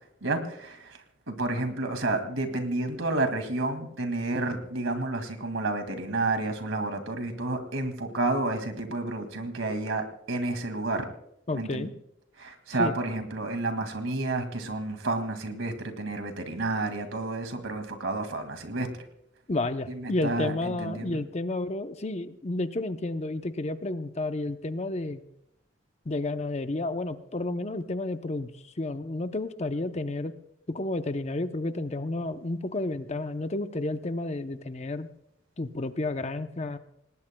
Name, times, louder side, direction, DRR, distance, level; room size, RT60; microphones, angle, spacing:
voice 1, 0.2-11.1 11.5-11.9 12.4-18.9 19.9-21.2, right 2 dB, 85° right, 7 dB, 2.2 m, -30 dB
voice 2, 11.5-11.9 12.8-12.9 19.5-25.2 26.1-30.3 30.7-35.1 35.6-36.8, left 2 dB, 35° left, 9 dB, 0.7 m, -31 dB
27.5 x 19.0 x 2.2 m, 0.77 s
head